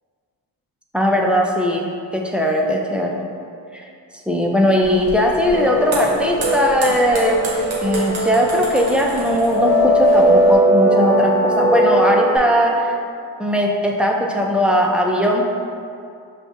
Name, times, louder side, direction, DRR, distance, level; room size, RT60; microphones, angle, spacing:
voice 1, 0.9-1.9 2.1-3.2 3.7-3.8 4.3-7.4 7.8-13.0 13.4-15.4, equal, 5° right, 0 dB, 0.4 m, -18 dB
sound 1, 4.8-10.5, right 2 dB, 90° right, 0.9 m, -32 dB
sound 2, 5.5-12.4, right 1 dB, 40° left, 0.7 m, -19 dB
5.8 x 2.4 x 2.6 m, 2.4 s
supercardioid pair, 55°, 46 cm